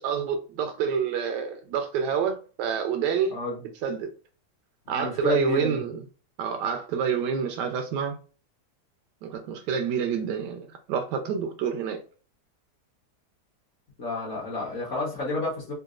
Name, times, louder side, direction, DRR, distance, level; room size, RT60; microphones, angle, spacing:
voice 1, 0.0-3.4 3.8-4.1 4.9-6.0 6.4-8.2 9.2-12.0, right 6 dB, 90° right, 1.2 m, -28 dB
voice 2, 4.9-5.8 14.0-15.7, left 2 dB, 50° left, 1.1 m, -30 dB
3.9 x 2.2 x 2.3 m
omnidirectional pair, 1.8 m